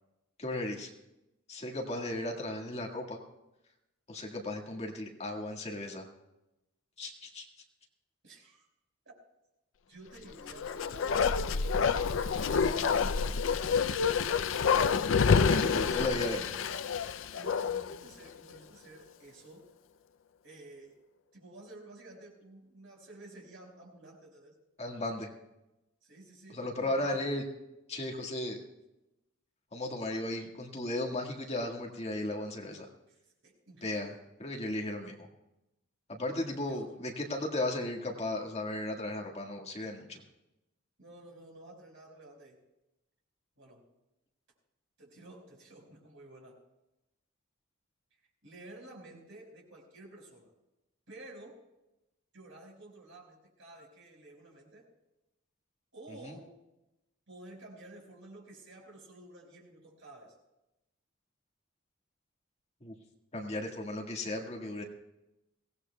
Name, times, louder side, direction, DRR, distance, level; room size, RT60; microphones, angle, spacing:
voice 1, 0.4-0.9 1.5-3.2 4.1-6.1 7.0-7.5 15.3-16.4 24.8-25.3 26.5-27.4 27.9-28.6 29.7-32.9 33.8-34.1 34.4-35.3 36.1-40.2 56.2-56.3 62.8-62.9 63.3-64.8, left 1 dB, 30° left, 1 dB, 1.7 m, -35 dB
voice 2, 8.2-8.6 9.0-9.1 9.9-11.7 12.3-14.1 15.7-16.5 17.3-19.6 20.4-21.0 21.3-24.5 26.0-27.2 33.1-33.2 33.4-34.2 36.2-37.0 41.0-42.6 43.6-43.8 45.0-46.6 48.4-50.5 51.1-51.6 52.3-54.9 55.9-56.5 57.3-60.3, right 2 dB, 65° right, -1 dB, 4.8 m, -52 dB
Bark, 10.4-18.0 18.3-18.4, left 6 dB, 65° left, 0.4 m, -28 dB
22.5 x 17.5 x 2.3 m, 0.94 s
head